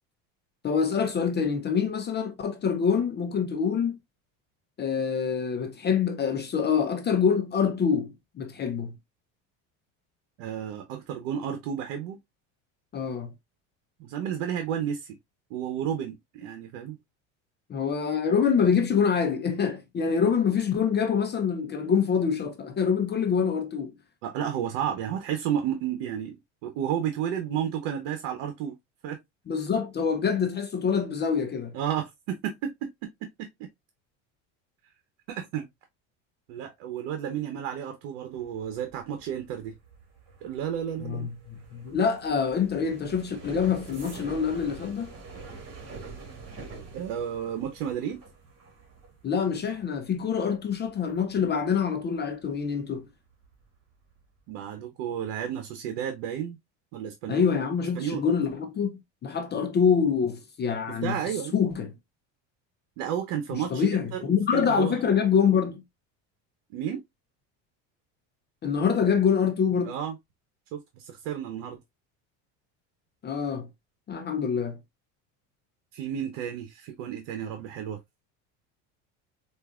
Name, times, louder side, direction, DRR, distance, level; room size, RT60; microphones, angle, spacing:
voice 1, 0.6-4.0 4.8-8.9 12.9-13.3 17.7-23.9 29.5-31.7 41.0-45.1 49.2-53.0 57.3-61.9 63.5-65.8 68.6-70.0 73.2-73.7 74.1-74.8, left 6 dB, 30° left, 0.5 m, -26 dB
voice 2, 10.4-12.2 14.0-15.2 15.5-17.0 24.2-28.7 29.0-29.2 31.7-32.9 33.4-33.7 35.3-35.7 36.5-39.7 40.4-41.3 46.9-48.2 54.5-56.6 56.9-57.5 57.9-58.2 60.9-61.5 63.0-65.0 66.7-67.0 69.8-70.2 70.7-71.8 75.9-78.0, right 9 dB, 75° right, 0.9 m, -32 dB
sound 1, 38.3-53.0 53.3-53.7 54.0-54.4, right 4 dB, 40° right, 2.2 m, -46 dB
4.7 x 2.6 x 2.3 m
supercardioid pair, 115°, 37 cm